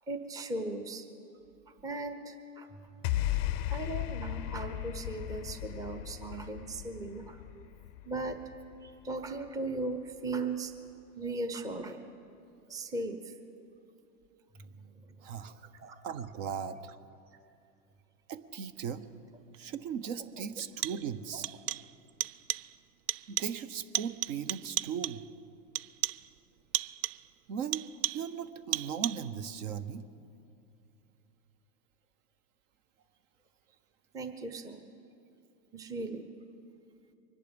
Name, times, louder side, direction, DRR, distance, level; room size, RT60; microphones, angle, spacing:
voice 1, 0.1-1.0 1.7-2.7 3.7-7.4 8.0-8.4 8.8-10.7 11.2-12.1 12.7-13.3 14.6-15.1 15.7-16.0 21.3-21.4 34.1-34.9 35.7-36.3, right 2 dB, 10° right, 7 dB, 0.7 m, -38 dB
sound 1, 3.0-9.5, left 14 dB, 30° left, 0.5 m, -36 dB
voice 2, 15.2-15.7 16.0-17.0 18.3-19.1 19.6-21.5 23.3-25.2 27.5-27.8 28.1-30.0, right 7 dB, 55° right, 13 dB, 1.0 m, -37 dB
sound 2, 19.5-19.6 20.6-21.2 21.4-22.0 22.2-22.8 23.1-23.7 23.9-25.3 25.8-26.3 26.7-27.3 27.7-28.4 28.7-29.4, right 14 dB, 80° right, 0.5 m, -35 dB
24.0 x 10.5 x 5.2 m, 2.7 s
hypercardioid pair, 120°, 46 cm